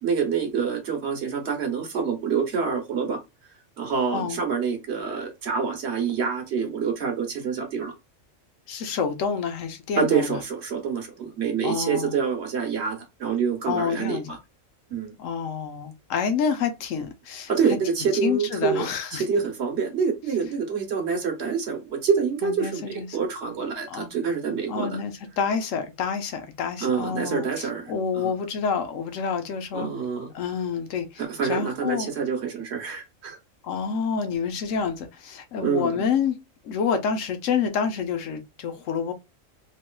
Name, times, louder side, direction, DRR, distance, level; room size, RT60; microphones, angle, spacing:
voice 1, 0.0-3.2 3.8-7.9 10.0-14.2 14.9-15.1 17.5-24.9 26.8-28.3 29.7-30.3 31.3-33.4 35.6-36.0, right 6 dB, 60° right, 1.1 m, -26 dB
voice 2, 8.7-10.4 11.6-12.2 13.7-14.4 15.2-17.5 18.2-19.2 22.4-23.1 23.9-24.1 24.7-29.9 30.3-31.2 31.5-32.1 33.6-36.4 36.6-39.1, left 6 dB, 75° left, 1.0 m, -28 dB
3.0 x 2.9 x 2.2 m
omnidirectional pair, 1.4 m